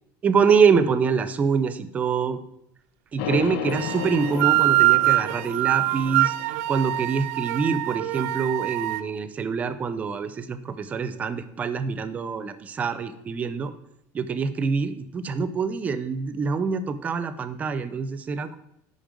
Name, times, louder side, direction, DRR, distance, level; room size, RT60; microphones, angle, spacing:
voice 1, 0.2-2.4 3.1-6.3 6.7-13.7 14.1-18.6, right 5 dB, 20° right, 13 dB, 0.4 m, -25 dB
sound 1, 3.2-7.3, left 9 dB, 80° left, 0.7 m, -34 dB
sound 2, 3.7-9.0, right 18 dB, 85° right, 0.4 m, -24 dB
9.0 x 5.3 x 5.1 m, 0.79 s
cardioid pair, 175°, 8 cm